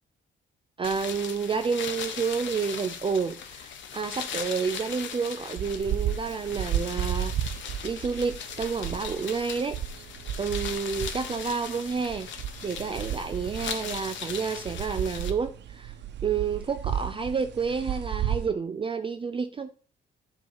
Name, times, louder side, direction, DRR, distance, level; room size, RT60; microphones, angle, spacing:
sound 1, 0.8-15.3, left 7 dB, 70° left, 0.9 m, -39 dB
voice 1, 0.8-7.3 7.8-9.8 10.4-12.3 12.6-15.9 16.2-19.7, right 5 dB, 25° right, 0.4 m, -30 dB
sound 2, 5.6-18.5, right 10 dB, 65° right, 0.7 m, -34 dB
7.6 x 2.8 x 5.6 m
cardioid pair, 90°, 20 cm